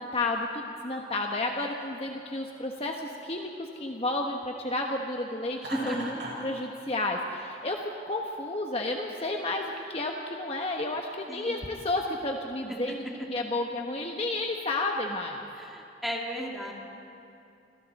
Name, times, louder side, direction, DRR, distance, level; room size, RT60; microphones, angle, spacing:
voice 1, 0.0-5.6 5.9-13.0 13.3-15.4, left 2 dB, 35° left, 1 dB, 1.1 m, -31 dB
Laughter, 5.6-6.5, right 2 dB, 85° right, 6.2 m, -37 dB
voice 2, 5.7-6.3 11.3-11.7 12.7-12.8 13.0-13.2 15.5-16.7, equal, ahead, -2 dB, 2.6 m, -35 dB
29.0 x 25.0 x 4.2 m, 2.7 s
head